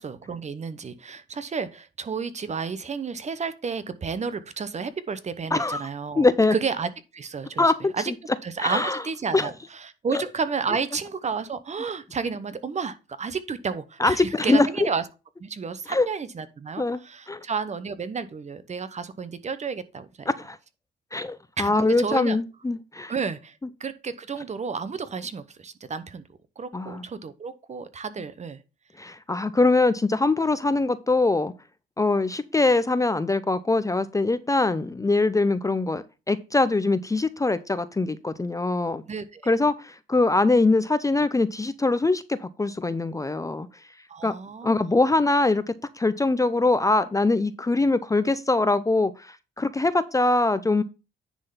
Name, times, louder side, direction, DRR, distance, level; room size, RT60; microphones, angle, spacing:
voice 1, 0.0-6.3 6.5-8.1 8.4-15.0 15.4-20.3 21.6-22.4 23.1-26.2 26.6-28.6 39.1-39.4 44.1-44.8, right 5 dB, 35° right, 0.9 m, -31 dB
voice 2, 5.5-5.9 6.2-6.5 7.6-8.1 8.6-9.0 9.3-9.5 10.1-10.2 14.0-14.9 15.9-16.1 16.8-17.0 17.3-17.4 20.4-20.6 21.1-23.1 26.7-27.0 29.0-31.5 32.0-39.0 39.5-43.7 44.2-44.3 44.6-50.8, left 3 dB, 15° left, 0.6 m, -23 dB
9.9 x 3.8 x 5.7 m
cardioid pair, 90°, 20 cm